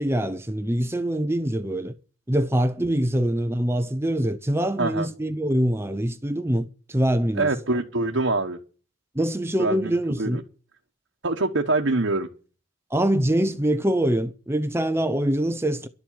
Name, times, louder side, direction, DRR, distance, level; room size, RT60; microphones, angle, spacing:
voice 1, 0.0-1.9 2.3-7.5 9.2-10.4 12.9-15.9, right 1 dB, 10° right, 0.7 m, -24 dB
voice 2, 4.8-5.1 7.3-8.6 9.6-10.4 11.2-12.3, right 2 dB, 65° right, 1.3 m, -24 dB
12.0 x 7.5 x 8.8 m
head